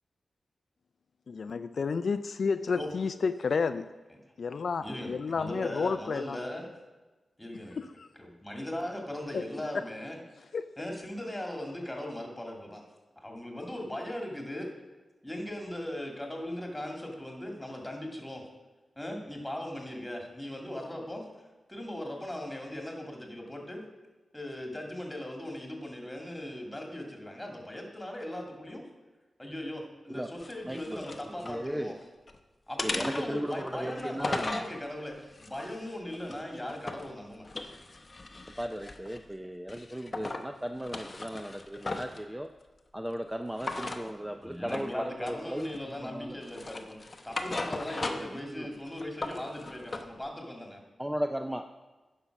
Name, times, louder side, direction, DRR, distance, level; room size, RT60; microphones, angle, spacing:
voice 1, 1.3-3.9 4.4-6.4 7.8-8.1 9.3-9.4 10.5-10.7, left 5 dB, 65° left, 11 dB, 0.3 m, -31 dB
voice 2, 4.8-6.7 7.4-7.8 8.2-10.2 10.8-12.8 13.2-14.7 15.2-18.5 19.0-21.2 21.7-23.8 24.3-28.9 29.4-31.9 32.7-37.4 40.1-40.3 44.2-47.0 47.2-50.8, left 1 dB, 10° left, 1 dB, 2.1 m, -39 dB
sound 1, 30.4-31.6 32.0-32.4 32.8-34.7 35.3-37.1 37.4-39.3 39.7-40.5 40.8-42.2 43.6-44.0 44.7-44.9 45.3-46.0 46.4-48.4 48.7-50.1, left 2 dB, 35° left, 0.8 m, -37 dB
voice 3, 30.6-31.1 31.5-31.9 32.8-34.6 38.6-42.5 42.9-45.7 46.0-46.4 48.4-48.7 51.0-51.6, equal, 10° right, 6 dB, 0.4 m, -36 dB
10.0 x 5.5 x 5.9 m, 1.2 s
wide cardioid pair, 100°, 0 cm